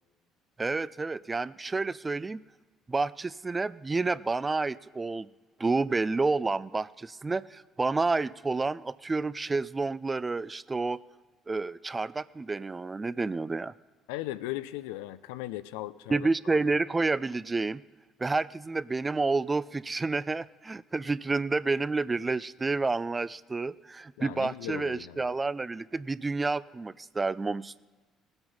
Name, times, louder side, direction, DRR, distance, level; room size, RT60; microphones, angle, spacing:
voice 1, 0.6-2.4 2.9-5.3 5.6-11.0 11.5-13.7 16.1-17.8 18.2-27.8, right 3 dB, 25° right, 18 dB, 0.4 m, -29 dB
voice 2, 14.1-16.6 24.2-25.3, left 15 dB, 80° left, 15 dB, 0.4 m, -38 dB
18.0 x 8.0 x 5.4 m, 1.2 s
hypercardioid pair, 60°, 0 cm